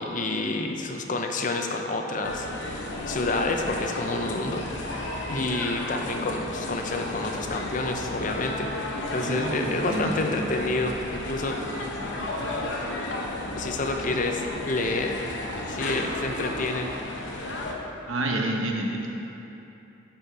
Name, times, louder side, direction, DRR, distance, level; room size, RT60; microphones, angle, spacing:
voice 1, 0.0-2.5 3.1-5.0 5.3-8.7 9.1-11.6 13.6-16.9, left 2 dB, 40° left, 3 dB, 0.5 m, -29 dB
sound 1, 2.2-17.7, left 1 dB, 60° left, 0.8 m, -33 dB
voice 2, 9.2-10.4 18.1-19.1, right 1 dB, 85° right, 0 dB, 1.0 m, -29 dB
10.0 x 4.3 x 4.5 m, 3.0 s
head